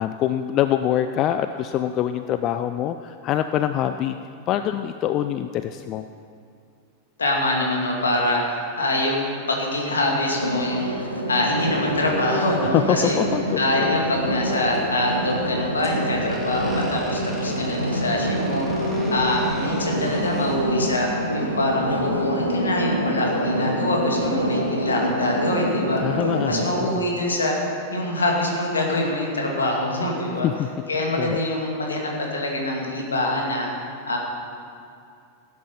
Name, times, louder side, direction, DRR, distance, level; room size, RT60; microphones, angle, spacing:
voice 1, 0.0-4.2 4.5-6.0 12.7-14.0 26.0-26.9 30.4-30.7 31.2-31.4, left 11 dB, 35° left, 9 dB, 0.4 m, -24 dB
voice 2, 7.2-13.2 13.6-26.0 26.5-27.6 27.9-30.5 30.9-33.7 34.1-34.2, left 1 dB, 75° left, -1 dB, 2.7 m, -24 dB
sound 1, 10.4-26.7, right 1 dB, 85° right, 1.2 m, -26 dB
sound 2, 14.5-20.7, equal, 5° left, 2.6 m, -42 dB
17.0 x 9.5 x 5.7 m, 2.4 s
figure-of-eight pair, 90°, 0 cm